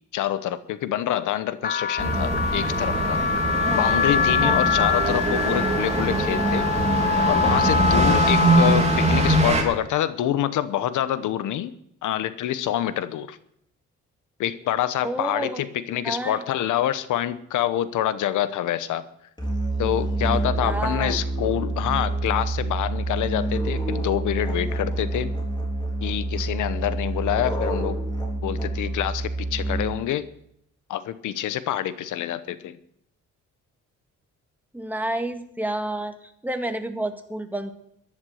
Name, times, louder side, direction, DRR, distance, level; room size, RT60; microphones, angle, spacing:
voice 1, 0.1-3.2 3.7-6.7 7.3-11.7 12.0-13.4 14.4-19.0 19.8-25.3 26.0-28.0 28.4-30.3 30.9-32.8, left 12 dB, 80° left, 14 dB, 1.0 m, -26 dB
sound 1, 1.6-9.5, left 5 dB, 35° left, 0.9 m, -24 dB
sound 2, 2.0-9.6, right 2 dB, 20° right, 3.2 m, -23 dB
voice 2, 3.5-3.9 4.4-4.8 8.2-8.3 15.0-15.6 16.0-16.4 20.2-21.2 34.7-37.7, right 1 dB, 5° right, 6 dB, 1.8 m, -30 dB
Musical instrument, 19.4-30.2, right 2 dB, 15° left, 4.0 m, -27 dB
14.0 x 11.0 x 6.5 m, 0.73 s
cardioid pair, 90°, 30 cm